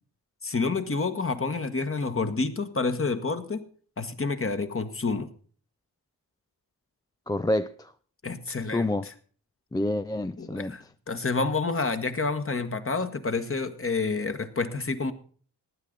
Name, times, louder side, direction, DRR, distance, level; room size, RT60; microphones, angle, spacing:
voice 1, 0.4-3.6 4.0-5.3 8.2-8.9 10.4-15.1, left 4 dB, 30° left, 1.5 m, -29 dB
voice 2, 7.3-7.9 8.7-9.1 9.7-10.8, left 1 dB, 10° left, 0.5 m, -28 dB
15.5 x 9.8 x 3.9 m
supercardioid pair, 45°, 43 cm